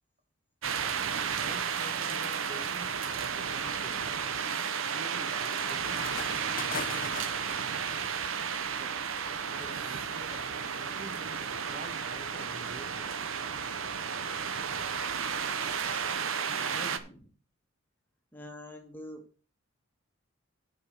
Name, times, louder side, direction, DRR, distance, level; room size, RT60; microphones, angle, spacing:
sound 1, 0.6-17.0, right 7 dB, 75° right, 0.8 m, -33 dB
voice 1, 0.8-4.2 4.8-7.1 7.8-8.3 8.8-13.5, right 1 dB, 35° right, 5 dB, 1.2 m, -49 dB
sound 2, 2.6-2.7 3.2-7.8, left 6 dB, 40° left, 0.7 m, -42 dB
voice 2, 16.7-17.3 18.3-19.2, left 1 dB, 10° left, 3 dB, 1.5 m, -45 dB
9.5 x 5.1 x 6.3 m, 0.39 s
head